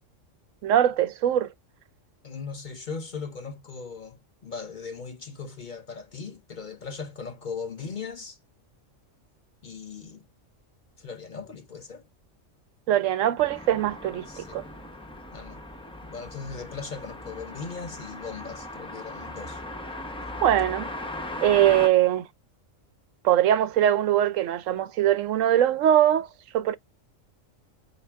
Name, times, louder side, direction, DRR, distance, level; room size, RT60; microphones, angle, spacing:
voice 1, 0.6-1.5 12.9-14.6 20.4-20.9 21.4-22.3 23.2-26.3 26.5-26.7, right 11 dB, 80° right, 1.0 m, -22 dB
voice 2, 2.2-8.4 9.6-10.2 11.0-12.1 14.3-14.6 15.3-15.6 16.1-19.6, left 5 dB, 45° left, 0.7 m, -38 dB
sound 1, 13.4-21.9, left 1 dB, 5° left, 0.4 m, -38 dB
5.3 x 2.6 x 3.4 m
omnidirectional pair, 1.3 m